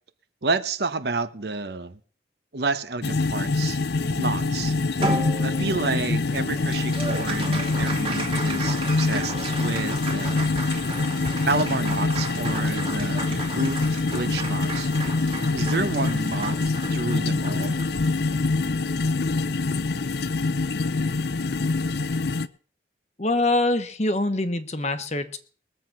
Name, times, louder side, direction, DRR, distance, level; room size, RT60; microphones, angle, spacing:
voice 1, 0.4-2.0 2.5-3.8 4.2-4.7 5.4-10.5 11.4-14.9 15.5-17.7, right 3 dB, 65° right, 11 dB, 1.0 m, -30 dB
sound 1, 3.0-22.5, left 3 dB, 65° left, 0.6 m, -25 dB
Applause, 5.0-19.7, right 3 dB, 30° right, 2.1 m, -35 dB
voice 2, 23.2-25.4, left 2 dB, 40° left, 10 dB, 1.1 m, -24 dB
21.0 x 7.8 x 5.9 m, 0.43 s
head